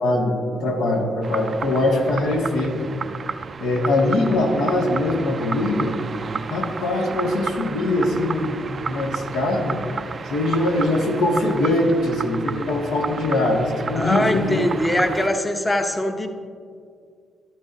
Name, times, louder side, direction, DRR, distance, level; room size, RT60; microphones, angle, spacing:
voice 1, 0.0-2.8 3.6-5.9 6.5-9.8 10.2-14.6, left 2 dB, 85° left, 0 dB, 1.4 m, -22 dB
sound 1, 1.2-15.3, right 5 dB, 40° right, 0.3 m, -32 dB
voice 2, 14.0-16.3, left 1 dB, 15° left, 5 dB, 0.7 m, -22 dB
12.0 x 11.5 x 2.6 m, 2.2 s
cardioid pair, 90°, 0 cm